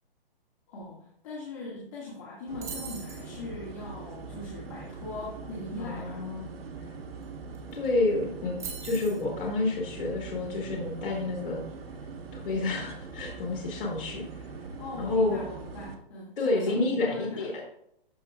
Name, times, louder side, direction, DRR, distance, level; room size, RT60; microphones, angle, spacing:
voice 1, 0.7-6.2 14.8-16.8 17.1-17.6, left 2 dB, 35° left, -5 dB, 2.0 m, -40 dB
sound 1, 2.5-16.0, right 4 dB, 85° right, 1.5 m, -42 dB
sound 2, 2.6-3.3 7.2-7.3 7.5-7.9 8.6-9.2, right 6 dB, 10° right, 1.0 m, -40 dB
voice 2, 5.8-6.5 7.7-11.6 12.3-14.4 15.0-15.4 16.4-17.6, left 2 dB, 65° left, -2 dB, 2.2 m, -29 dB
13.0 x 4.5 x 2.5 m, 0.72 s
hypercardioid pair, 155°, 29 cm